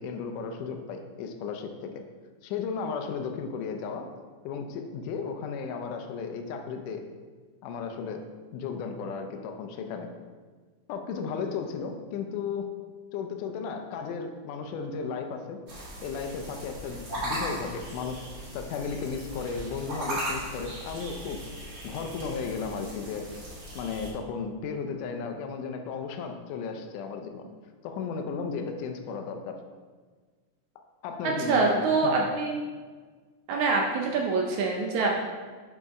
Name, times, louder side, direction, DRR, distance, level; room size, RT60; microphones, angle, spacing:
voice 1, 0.0-2.0 2.4-4.1 4.4-7.1 7.6-8.2 8.5-10.1 10.9-12.7 13.1-15.6 16.0-18.3 18.5-21.4 21.8-23.4 23.8-27.5 27.8-29.6 31.0-32.3, left 5 dB, 80° left, 5 dB, 2.1 m, -34 dB
sound 1, 15.7-24.1, equal, 40° right, 2.0 m, -38 dB
voice 2, 31.2-32.6 33.5-35.1, right 4 dB, 75° right, -1 dB, 1.9 m, -25 dB
7.0 x 5.4 x 3.6 m, 1.4 s
omnidirectional pair, 3.8 m